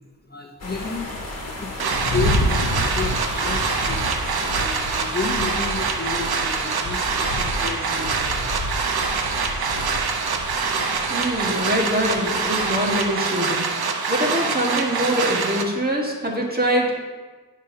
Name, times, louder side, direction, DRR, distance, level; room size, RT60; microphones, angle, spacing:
voice 1, 0.3-1.2 1.6-1.7 2.0-4.0 4.3-8.6, left 4 dB, 25° left, 0 dB, 0.8 m, -31 dB
sound 1, 0.6-6.2, left 2 dB, 45° left, 1.6 m, -35 dB
sound 2, 1.8-15.6, right 4 dB, 80° right, 0.8 m, -25 dB
sound 3, 1.9-13.1, left 1 dB, 70° left, 1.0 m, -30 dB
voice 2, 11.1-17.0, equal, 25° right, -1 dB, 1.6 m, -24 dB
9.9 x 6.3 x 2.8 m, 1.3 s
cardioid pair, 65°, 37 cm